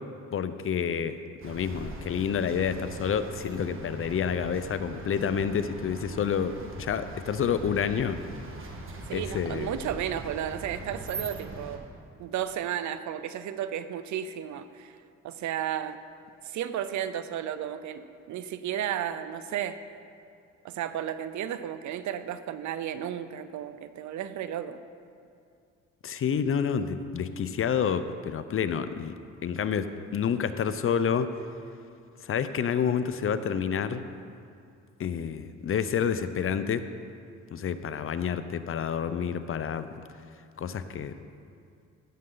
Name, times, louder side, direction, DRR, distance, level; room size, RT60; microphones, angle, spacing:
voice 1, 0.3-1.2 1.4-8.2 9.1-9.8 26.0-29.1 29.4-29.9 30.1-31.3 32.2-34.0 35.0-36.8 37.5-39.9 40.6-41.1, left 7 dB, 45° left, 11 dB, 0.6 m, -29 dB
sound 1, 1.4-11.8, right 2 dB, 45° right, 1.5 m, -41 dB
voice 2, 9.1-11.8 12.2-15.0 15.2-16.0 16.4-19.8 20.6-24.8, right 10 dB, 70° right, 12 dB, 0.6 m, -33 dB
15.0 x 7.6 x 3.9 m, 2.4 s
cardioid pair, 90°, 30 cm